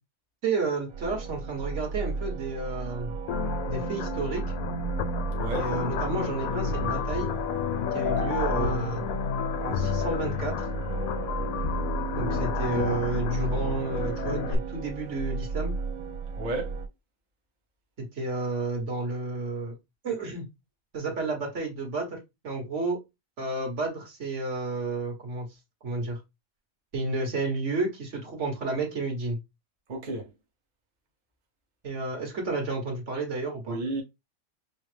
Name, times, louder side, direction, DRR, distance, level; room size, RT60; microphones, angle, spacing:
voice 1, 0.4-3.1 3.7-4.4 5.5-7.3 7.9-9.0 9.6-10.7 12.2-15.7 18.0-19.7 20.0-20.4 20.9-22.2 22.4-23.0 23.4-25.5 25.8-26.2 26.9-29.4 31.8-33.8, right 3 dB, 55° right, 1.6 m, -31 dB
sound 1, 0.9-16.9, right 4 dB, 90° right, 1.3 m, -34 dB
sound 2, 3.3-14.5, left 8 dB, 80° left, 1.0 m, -31 dB
voice 2, 5.4-5.7 8.0-8.4 16.4-16.7 29.9-30.3 33.7-34.0, right 2 dB, 40° right, 0.9 m, -32 dB
5.5 x 2.0 x 3.2 m
omnidirectional pair, 1.5 m